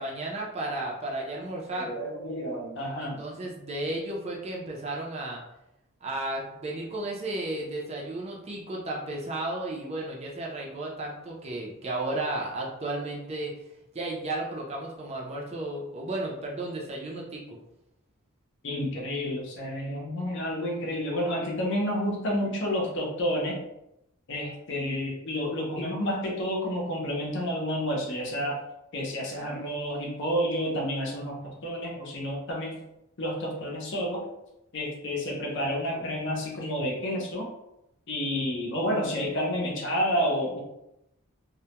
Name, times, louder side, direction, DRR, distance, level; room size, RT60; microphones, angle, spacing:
voice 1, 0.0-1.9 3.0-5.4 6.0-13.5 13.9-17.4, right 2 dB, 30° right, -3 dB, 0.4 m, -33 dB
voice 2, 1.7-3.2 18.6-23.6 24.3-28.6 28.9-32.8 33.2-34.2 34.7-37.5 38.1-40.6, equal, 55° left, -1 dB, 0.6 m, -30 dB
2.2 x 2.1 x 2.8 m, 0.85 s
head